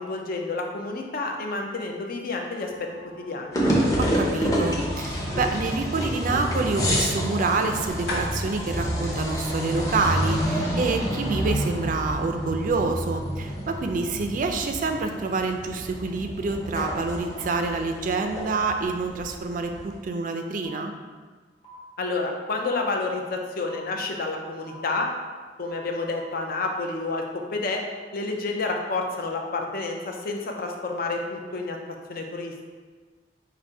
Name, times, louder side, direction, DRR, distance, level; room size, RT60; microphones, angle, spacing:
voice 1, 0.0-2.9 3.2-3.6 22.0-25.1 25.6-27.8 28.1-31.8 32.1-32.5, left 3 dB, 55° left, 2 dB, 0.5 m, -29 dB
sound 1, 2.6-10.4, left 1 dB, 70° left, 1.2 m, -41 dB
sound 2, 3.5-19.9, equal, 20° left, 0.7 m, -28 dB
voice 2, 4.0-20.9, right 3 dB, 50° right, 5 dB, 0.4 m, -27 dB
sound 3, 20.6-20.8 21.6-21.8 22.6-22.8 23.6-23.8 24.6-24.8 25.6-26.2, right 1 dB, 35° left, 1.1 m, -47 dB
4.2 x 2.5 x 4.6 m, 1.4 s
head